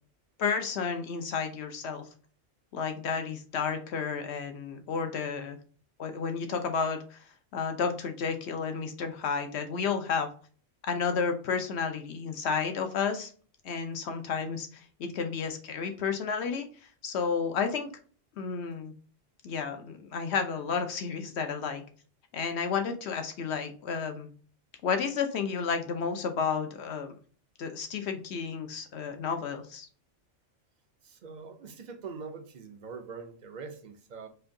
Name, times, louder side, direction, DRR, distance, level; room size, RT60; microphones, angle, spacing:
voice 1, 0.4-2.1 2.7-5.6 6.0-7.3 7.5-10.3 10.8-13.3 13.6-16.7 17.0-17.9 18.4-18.9 19.4-21.8 22.3-24.3 24.8-27.1 27.6-29.9, left 6 dB, 65° left, 7 dB, 1.0 m, -31 dB
voice 2, 31.0-34.3, right 5 dB, 45° right, 6 dB, 0.6 m, -43 dB
4.4 x 2.8 x 2.6 m, 0.41 s
omnidirectional pair, 1.3 m